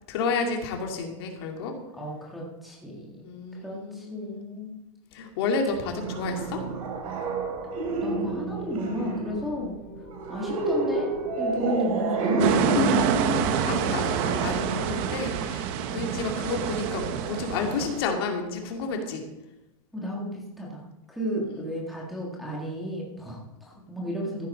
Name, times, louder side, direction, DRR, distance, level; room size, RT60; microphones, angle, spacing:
voice 1, 0.0-1.7 3.2-4.5 5.1-6.6 13.5-19.2 21.5-21.7, left 4 dB, 45° left, 3 dB, 2.3 m, -31 dB
voice 2, 1.9-3.2 3.5-4.8 8.0-9.7 10.3-11.1 11.4-13.0 15.8-16.1 19.9-20.8 21.1-24.5, equal, ahead, -5 dB, 1.5 m, -33 dB
sound 1, 5.7-15.4, right 2 dB, 90° right, 4.5 m, -29 dB
sound 2, 12.4-18.0, right 8 dB, 30° right, 0.8 m, -28 dB
14.5 x 10.5 x 4.2 m, 0.92 s
supercardioid pair, 175°, 18 cm